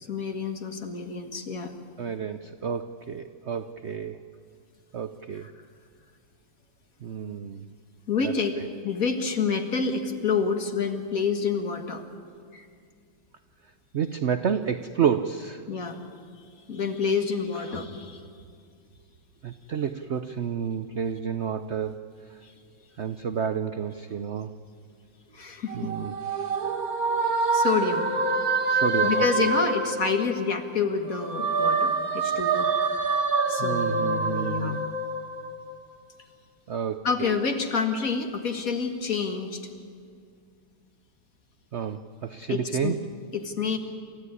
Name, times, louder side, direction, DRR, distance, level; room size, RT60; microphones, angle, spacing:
voice 1, 0.0-1.8 5.4-5.5 8.1-8.5 8.8-12.0 12.5-12.7 15.7-16.0 16.7-18.2 22.4-22.5 25.3-25.9 27.5-28.1 29.0-34.8 37.0-39.7 42.5-43.0 43.3-43.8, left 5 dB, 45° left, 5 dB, 2.0 m, -28 dB
voice 2, 2.0-4.2 4.9-5.5 7.0-7.7 8.2-8.7 13.9-15.6 19.4-22.0 23.0-24.5 25.7-26.6 28.7-29.5 33.6-34.9 36.7-37.3 41.7-43.0, right 7 dB, 75° right, 10 dB, 0.6 m, -30 dB
sound 1, 25.7-30.7 31.1-35.8, right 3 dB, 50° right, 2.0 m, -26 dB
28.5 x 14.5 x 9.8 m, 2.2 s
omnidirectional pair, 2.1 m